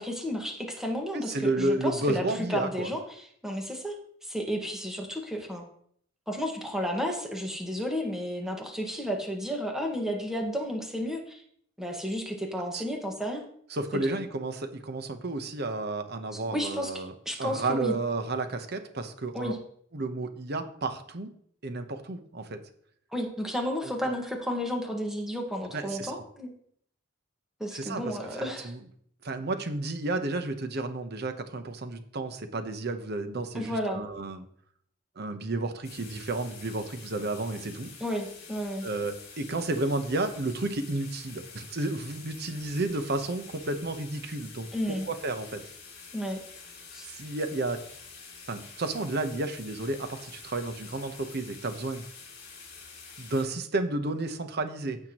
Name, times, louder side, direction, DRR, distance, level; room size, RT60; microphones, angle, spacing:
voice 1, 0.0-3.9 4.2-5.6 6.3-11.4 11.8-13.4 13.9-14.2 16.5-17.9 19.3-19.6 23.1-26.5 27.6-28.7 33.5-34.0 38.0-38.9 44.7-45.1 46.1-46.4 46.9-47.1, equal, 5° right, 1 dB, 1.6 m, -32 dB
voice 2, 1.1-2.9 12.7-12.8 13.7-17.1 17.4-19.5 19.9-21.3 21.6-22.6 23.8-23.9 25.7-26.2 27.7-28.8 29.2-34.4 35.2-37.9 38.8-45.6 47.0-47.8 48.5-52.0 53.2-55.0, right 2 dB, 55° right, 8 dB, 1.0 m, -32 dB
sound 1, 35.8-53.4, left 5 dB, 55° left, 2.7 m, -47 dB
15.0 x 5.9 x 3.0 m, 0.63 s
head